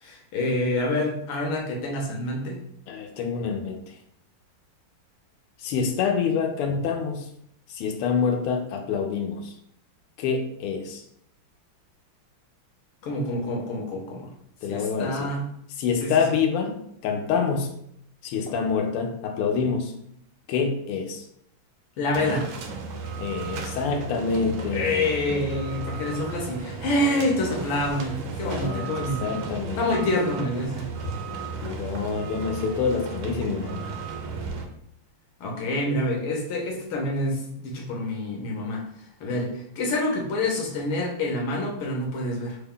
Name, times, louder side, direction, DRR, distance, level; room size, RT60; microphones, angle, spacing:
voice 1, 0.0-2.6 13.0-14.3 14.7-15.4 16.0-16.1 22.0-22.5 24.7-29.4 29.8-31.0 35.4-38.8 39.2-42.6, left 1 dB, 70° left, 0 dB, 1.5 m, -27 dB
voice 2, 2.9-4.0 5.6-7.3 7.7-9.5 10.2-11.0 14.6-15.3 15.8-16.8 17.0-17.7 18.2-19.9 20.5-21.2 23.2-25.1 28.4-29.9 31.0-31.1 31.5-33.9, left 5 dB, 90° left, 4 dB, 1.5 m, -27 dB
sound 1, 22.1-34.7, right 4 dB, 75° right, 1.0 m, -35 dB
3.9 x 2.2 x 3.5 m, 0.71 s
omnidirectional pair, 2.4 m